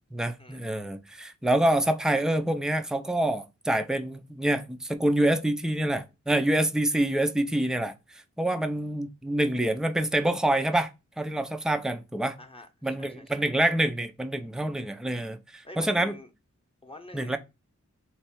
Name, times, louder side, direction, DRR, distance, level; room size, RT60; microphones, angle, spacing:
voice 1, 0.1-7.9 8.4-10.9 11.2-12.4 12.8-16.2 17.1-17.4, right 1 dB, ahead, 0.6 m, -26 dB
voice 2, 12.4-13.4 15.6-16.3 16.8-17.4, left 2 dB, 20° left, 0.9 m, -46 dB
3.2 x 3.1 x 4.5 m
wide cardioid pair, 50°, 29 cm